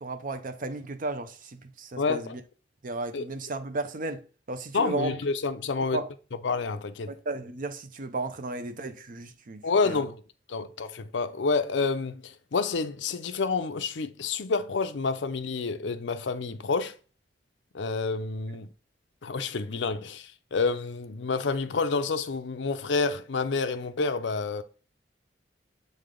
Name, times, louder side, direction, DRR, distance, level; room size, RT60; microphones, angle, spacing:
voice 1, 0.0-2.4 2.8-4.2 4.5-5.1 5.9-6.1 7.1-10.0, right 3 dB, 50° right, 0.6 m, -34 dB
voice 2, 2.0-2.4 3.1-3.3 4.7-6.0 6.4-7.1 9.6-10.2 10.5-17.0 17.7-18.7 19.2-24.6, left 4 dB, 85° left, 0.6 m, -29 dB
7.7 x 3.4 x 3.7 m
head